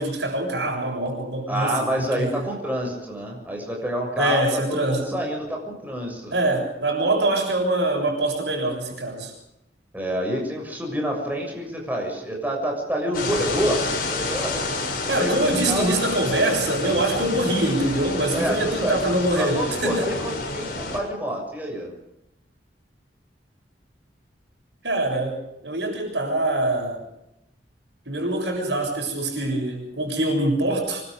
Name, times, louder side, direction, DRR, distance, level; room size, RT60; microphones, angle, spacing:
voice 1, 0.0-2.5 4.2-5.2 6.3-9.3 15.1-20.1 24.8-27.0 28.1-31.0, right 1 dB, 85° right, 2 dB, 7.2 m, -24 dB
voice 2, 1.5-6.4 9.9-13.8 14.1-16.0 18.3-19.0 19.4-21.9, right 1 dB, 10° right, 0 dB, 6.8 m, -28 dB
sound 1, 13.1-21.0, left 2 dB, 55° left, 7.2 m, -29 dB
26.0 x 23.0 x 5.2 m, 0.85 s
head